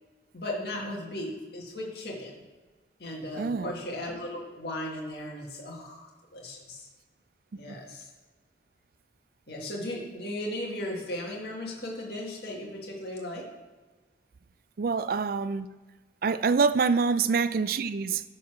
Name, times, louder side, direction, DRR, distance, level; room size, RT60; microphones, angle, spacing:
voice 1, 0.3-2.3 3.0-6.9 7.5-8.1 9.5-13.5, left 1 dB, 60° left, 2.0 m, -36 dB
voice 2, 3.4-3.7 7.7-7.8 14.8-15.7 16.2-18.2, right 5 dB, 50° right, 0.4 m, -26 dB
9.6 x 4.3 x 6.1 m
head